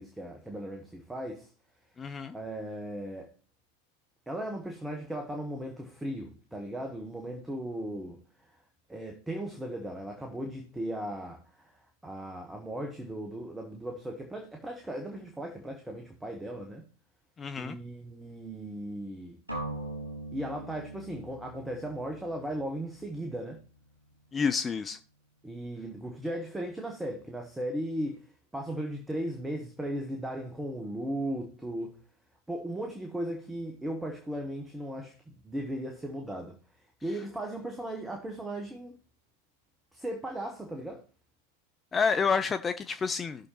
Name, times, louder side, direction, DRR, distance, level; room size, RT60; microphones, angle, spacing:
voice 1, 0.0-1.5 2.3-3.3 4.3-8.2 8.9-11.7 12.0-16.8 17.6-19.4 20.3-23.6 25.4-28.2 28.5-32.0 32.5-35.1 35.4-36.6 37.0-39.0 39.9-41.0, right 1 dB, 5° right, 1.3 m, -37 dB
voice 2, 2.0-2.4 17.4-17.8 24.3-25.0 41.9-43.5, left 5 dB, 20° left, 0.5 m, -29 dB
sound 1, 19.5-23.4, right 1 dB, 85° right, 4.6 m, -41 dB
16.5 x 6.4 x 3.0 m
figure-of-eight pair, 90°, 0 cm